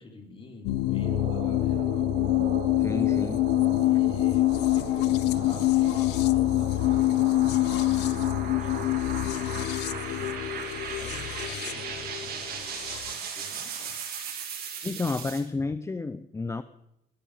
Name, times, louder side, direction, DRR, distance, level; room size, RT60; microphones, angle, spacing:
voice 1, 0.0-2.1 3.0-3.2 3.8-13.9, left 3 dB, 30° left, 4 dB, 3.8 m, -47 dB
sound 1, 0.6-13.1, left 17 dB, 90° left, 0.7 m, -25 dB
sound 2, 0.8-15.4, right 6 dB, 60° right, 4.5 m, -37 dB
voice 2, 2.8-3.4 14.8-16.6, left 3 dB, 15° left, 13 dB, 0.7 m, -31 dB
20.5 x 13.0 x 5.1 m, 0.84 s
cardioid pair, 110°, 17 cm